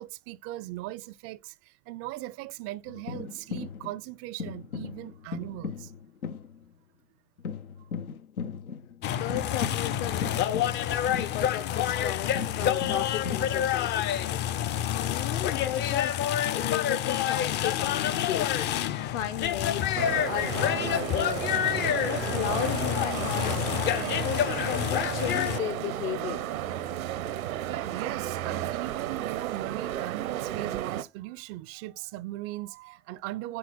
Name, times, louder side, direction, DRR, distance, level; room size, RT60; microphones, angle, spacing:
voice 1, 0.0-5.9 27.9-33.6, right 17 dB, 35° right, 0.4 m, -39 dB
sound 1, 2.9-4.0 4.4-6.8 7.4-11.9 12.3-15.2 15.6-16.1 16.4-18.3 18.6-18.9 19.4-19.8, left 6 dB, 90° left, 0.7 m, -39 dB
sound 2, 9.0-25.6, left 10 dB, 25° left, 0.4 m, -28 dB
voice 2, 9.1-10.8 11.2-12.3 12.6-14.0 14.9-16.2 16.5-18.4 19.0-21.6 22.0-23.7 24.2-26.4, left 11 dB, 55° left, 0.8 m, -35 dB
sound 3, 20.0-31.0, right 12 dB, 75° right, 0.7 m, -33 dB
6.8 x 4.3 x 3.8 m
figure-of-eight pair, 80°, 42 cm